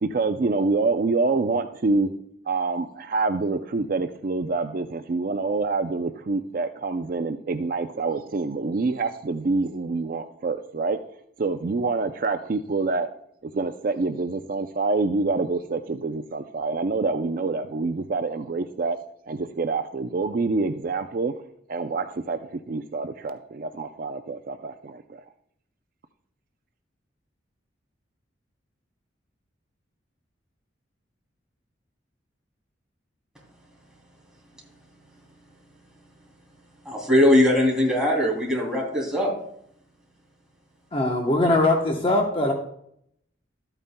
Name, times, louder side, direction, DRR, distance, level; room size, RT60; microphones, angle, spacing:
voice 1, 0.0-2.1 2.5-11.0 11.4-13.1 13.5-19.0 19.3-21.3 21.7-25.2, right 3 dB, 50° right, 8 dB, 0.4 m, -26 dB
voice 2, 36.8-39.3, left 1 dB, 5° right, -3 dB, 2.9 m, -20 dB
voice 3, 40.9-42.5, left 2 dB, 30° left, 2 dB, 0.9 m, -21 dB
13.0 x 8.9 x 2.2 m, 0.71 s
head